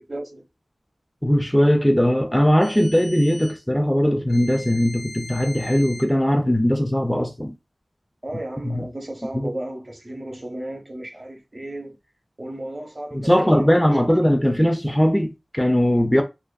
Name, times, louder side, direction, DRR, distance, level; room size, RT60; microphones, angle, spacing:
voice 1, 0.1-0.5 8.2-12.0 12.4-14.2, right 1 dB, 35° right, 0.7 m, -34 dB
voice 2, 1.2-7.5 8.7-8.9 9.4-9.5 13.1-16.2, equal, 10° left, 0.4 m, -19 dB
sound 1, 2.6-3.6 4.3-6.1, left 1 dB, 55° left, 0.7 m, -40 dB
2.5 x 2.3 x 2.2 m
wide cardioid pair, 70°, 0 cm